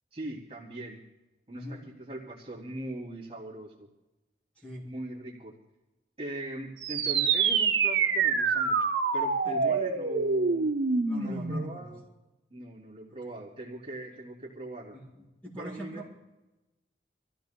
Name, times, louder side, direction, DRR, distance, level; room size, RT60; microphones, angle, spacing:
voice 1, 0.1-1.0 1.5-3.9 4.8-5.5 6.2-8.8 9.1-10.7 11.2-12.0 12.5-15.0 15.6-16.0, right 1 dB, 30° right, -6 dB, 3.0 m, -40 dB
voice 2, 1.5-1.9 4.6-4.9 9.4-9.8 11.0-11.9 13.1-13.2 14.9-16.1, equal, 10° left, -5 dB, 5.5 m, -43 dB
sound 1, 6.8-11.8, right 5 dB, 90° right, 1.0 m, -26 dB
28.0 x 16.0 x 2.3 m, 1.0 s
head